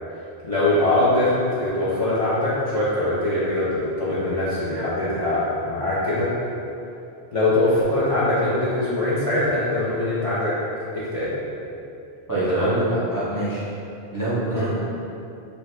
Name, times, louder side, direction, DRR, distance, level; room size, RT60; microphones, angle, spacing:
voice 1, 0.4-6.3 7.3-10.6 10.9-11.3 12.5-12.8 14.5-14.8, left 1 dB, 50° left, -11 dB, 0.4 m, -22 dB
voice 2, 12.3-13.6 14.1-14.8, right 2 dB, 30° right, -11 dB, 0.4 m, -25 dB
2.7 x 2.4 x 3.1 m, 2.7 s
omnidirectional pair, 1.1 m